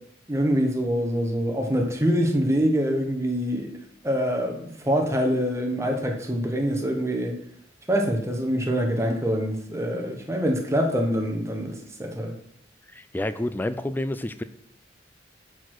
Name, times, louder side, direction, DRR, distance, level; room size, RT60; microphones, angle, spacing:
voice 1, 0.3-3.7 4.0-7.4 7.9-12.3, equal, 15° right, 1.0 m, -25 dB
voice 2, 12.9-14.4, left 1 dB, 10° left, 0.3 m, -29 dB
6.7 x 4.7 x 6.0 m
head